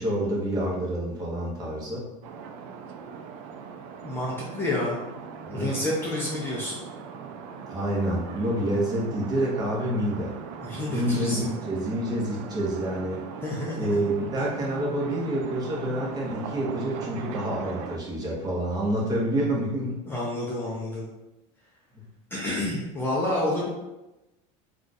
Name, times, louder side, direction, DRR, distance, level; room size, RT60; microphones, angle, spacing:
voice 1, 0.0-2.1 5.4-5.8 7.7-10.3 10.9-13.2 13.8-20.0 21.9-22.0, right 1 dB, 25° right, -4 dB, 0.8 m, -28 dB
sound 1, 2.2-18.0, right 6 dB, 85° right, 0.4 m, -40 dB
voice 2, 4.0-5.0 5.5-6.8 10.6-11.5 13.4-13.9 20.1-21.0 22.3-23.7, left 1 dB, 15° left, -5 dB, 0.5 m, -29 dB
2.4 x 2.3 x 3.9 m, 0.99 s
cardioid pair, 150°, 17 cm